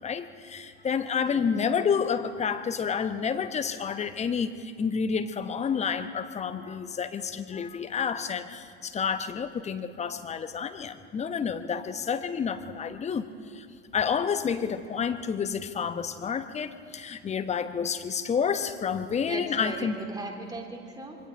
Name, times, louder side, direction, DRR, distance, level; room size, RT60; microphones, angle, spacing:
voice 1, 0.0-13.3 13.5-13.7 13.9-20.0, left 6 dB, 20° left, 9 dB, 1.0 m, -29 dB
voice 2, 19.2-21.2, right 2 dB, 10° right, 1 dB, 3.4 m, -38 dB
26.5 x 22.5 x 4.5 m, 2.4 s
figure-of-eight pair, 75°, 34 cm